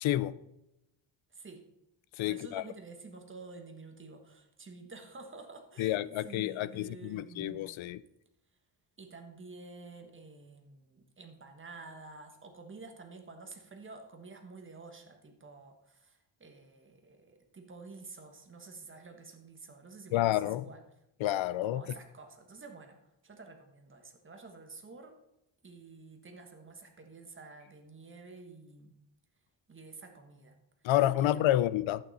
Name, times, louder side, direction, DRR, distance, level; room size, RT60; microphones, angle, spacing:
voice 1, 0.0-0.3 2.2-2.6 5.8-8.0 20.1-20.6 21.2-21.8 30.8-32.0, left 14 dB, 85° left, 0.6 m, -29 dB
voice 2, 1.3-1.7 2.2-7.7 9.0-20.8 21.6-25.2 25.6-28.9 29.7-30.6 31.2-31.6, right 3 dB, 25° right, 1.3 m, -50 dB
11.0 x 9.0 x 4.1 m
wide cardioid pair, 160°, 46 cm